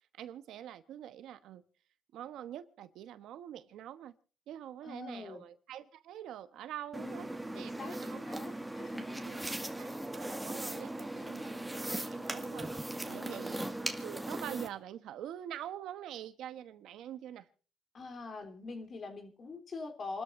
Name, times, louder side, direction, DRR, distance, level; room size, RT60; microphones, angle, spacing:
voice 1, 0.2-1.6 2.1-4.1 4.5-8.4 9.3-9.4 9.8-13.6 14.0-17.5, right 11 dB, 80° right, 1.1 m, -45 dB
voice 2, 4.8-5.4 6.9-9.5 13.1-13.5 17.9-20.2, left 3 dB, 45° left, 3.4 m, -44 dB
sound 1, 6.9-14.7, right 1 dB, 5° right, 2.0 m, -39 dB
28.5 x 13.0 x 2.6 m
cardioid pair, 90°, 0 cm